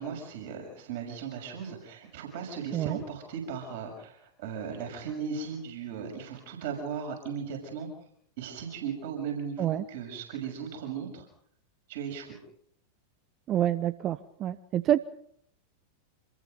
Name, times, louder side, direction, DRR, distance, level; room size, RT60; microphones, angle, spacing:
voice 1, 0.0-7.9 8.4-11.3 11.9-12.4, right 6 dB, 55° right, 3 dB, 6.5 m, -37 dB
voice 2, 13.5-15.0, right 12 dB, 30° right, 15 dB, 0.8 m, -27 dB
27.5 x 21.0 x 5.3 m, 0.67 s
figure-of-eight pair, 90°, 0 cm